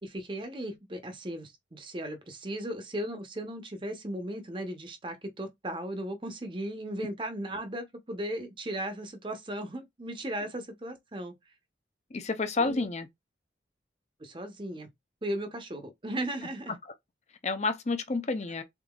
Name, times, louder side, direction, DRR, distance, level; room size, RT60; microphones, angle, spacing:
voice 1, 0.0-11.3 12.6-12.9 14.2-14.9 15.2-16.8, right 1 dB, 30° right, 0.9 m, -36 dB
voice 2, 12.1-13.1 17.4-18.6, left 3 dB, 40° left, 0.6 m, -29 dB
3.9 x 3.7 x 2.4 m
head